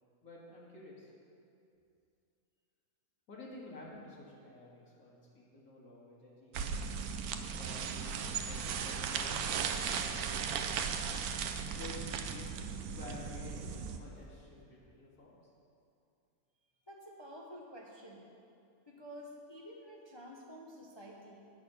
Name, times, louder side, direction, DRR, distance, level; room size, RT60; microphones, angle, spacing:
voice 1, 0.2-1.1 3.3-6.8 7.6-10.9 11.7-15.3, left 2 dB, 85° left, -6 dB, 2.3 m, -51 dB
sound 1, 6.5-14.0, right 6 dB, 90° right, 1.1 m, -37 dB
voice 2, 16.9-18.3 18.9-21.5, equal, 25° left, -2 dB, 0.7 m, -50 dB
9.3 x 6.2 x 6.8 m, 2.5 s
omnidirectional pair, 1.5 m